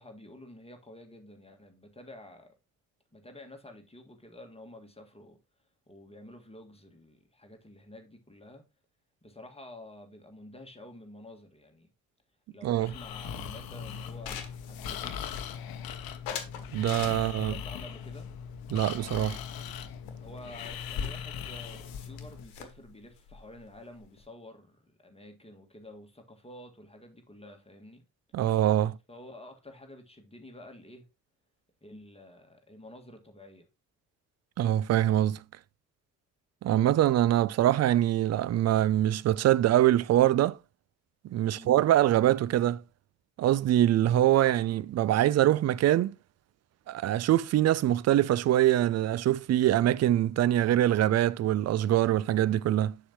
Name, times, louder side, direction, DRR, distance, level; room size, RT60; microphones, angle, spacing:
voice 1, 0.0-2.5 3.1-5.4 5.9-8.6 9.2-11.9 12.5-15.4 17.1-18.3 20.2-28.0 29.1-31.1 31.8-33.7 41.4-41.7, left 1 dB, 15° left, 1.8 m, -50 dB
voice 2, 12.6-12.9 16.7-17.5 18.7-19.4 28.3-29.0 34.6-35.4 36.6-40.6 41.2-42.8 43.4-46.1 46.9-53.0, right 12 dB, 40° right, 0.4 m, -24 dB
Breathing, 12.7-22.4, left 8 dB, 60° left, 0.9 m, -40 dB
sound 1, 13.7-15.8 16.2-17.6 18.1-19.4 19.7-19.8 20.1-20.2 20.4-24.2, left 7 dB, 75° left, 1.3 m, -42 dB
7.0 x 6.9 x 3.0 m
hypercardioid pair, 45°, 41 cm